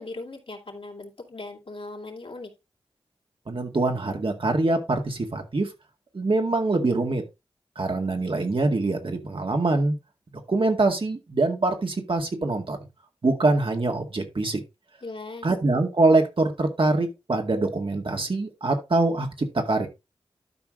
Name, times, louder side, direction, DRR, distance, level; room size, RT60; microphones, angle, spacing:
voice 1, 0.0-2.5 15.0-15.5, left 2 dB, 65° left, 1 dB, 2.7 m, -38 dB
voice 2, 3.5-5.7 6.1-7.2 7.8-10.0 10.5-12.8 13.2-14.6 15.4-19.9, right 2 dB, 60° right, 3 dB, 2.1 m, -24 dB
12.0 x 4.9 x 3.7 m, 0.25 s
cardioid pair, 40°, 10 cm